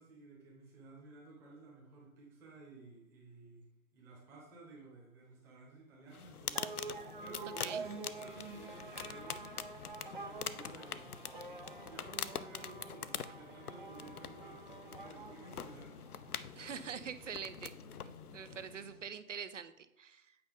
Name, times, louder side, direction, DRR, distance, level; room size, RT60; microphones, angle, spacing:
voice 1, 0.0-3.6 3.9-9.6 10.1-11.2 11.7-16.7, right 3 dB, 5° right, -4 dB, 1.0 m, -55 dB
sound 1, 6.1-18.8, left 8 dB, 85° left, 0.7 m, -45 dB
sound 2, 6.6-16.3, right 4 dB, 35° right, 0.5 m, -48 dB
sound 3, 13.9-19.1, left 1 dB, 25° left, 0.8 m, -58 dB
voice 2, 16.6-17.7 18.0-20.4, right 7 dB, 55° right, 13 dB, 0.8 m, -45 dB
8.7 x 5.4 x 5.3 m, 0.87 s
hypercardioid pair, 160°, 44 cm